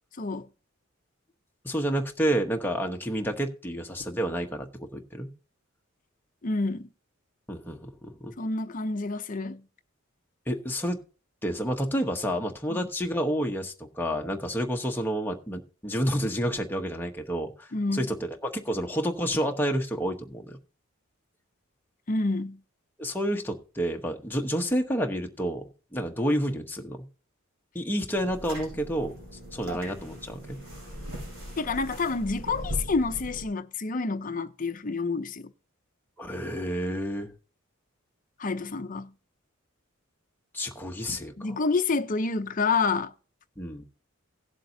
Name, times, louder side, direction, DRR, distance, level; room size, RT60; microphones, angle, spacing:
voice 1, 0.2-0.5 6.4-6.9 8.4-9.7 12.7-12.8 17.7-18.1 22.1-22.6 29.7-29.8 31.6-35.5 38.4-39.1 41.4-43.1, left 3 dB, 40° left, 0.6 m, -28 dB
voice 2, 1.6-5.3 7.5-8.3 10.5-11.0 11.4-20.6 23.0-25.7 25.9-27.0 27.7-29.1 29.5-30.6 36.2-37.3 40.5-41.3 43.6-43.8, equal, 10° left, 1.0 m, -29 dB
sound 1, 28.1-33.5, equal, 85° right, 7.0 m, -39 dB
18.0 x 7.5 x 2.7 m
head